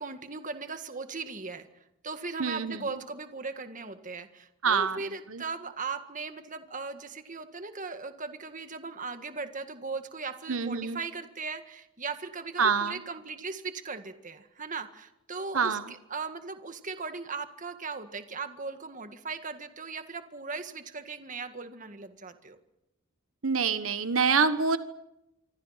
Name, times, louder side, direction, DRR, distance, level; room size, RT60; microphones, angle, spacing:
voice 1, 0.0-1.7 2.0-22.6, right 4 dB, 40° right, 8 dB, 1.8 m, -38 dB
voice 2, 2.4-2.8 4.6-5.0 5.3-5.4 10.5-11.0 12.6-12.9 15.5-15.8 23.4-24.8, right 5 dB, 85° right, 11 dB, 1.3 m, -26 dB
27.5 x 24.5 x 5.8 m, 0.88 s
head